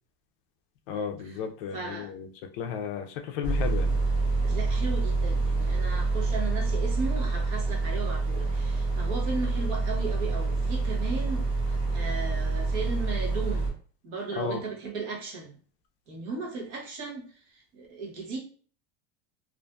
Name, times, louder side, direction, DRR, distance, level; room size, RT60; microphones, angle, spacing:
voice 1, 0.9-2.3 2.6-4.0 14.4-14.6, left 7 dB, 55° left, 5 dB, 0.4 m, -33 dB
voice 2, 1.7-2.1 4.4-11.4 11.9-13.7 14.0-15.5 16.1-17.3 17.7-18.4, right 4 dB, 45° right, -1 dB, 0.9 m, -36 dB
sound 1, 3.4-13.7, right 3 dB, 15° right, 0.8 m, -27 dB
2.5 x 2.4 x 2.2 m, 0.43 s
supercardioid pair, 170°, 32 cm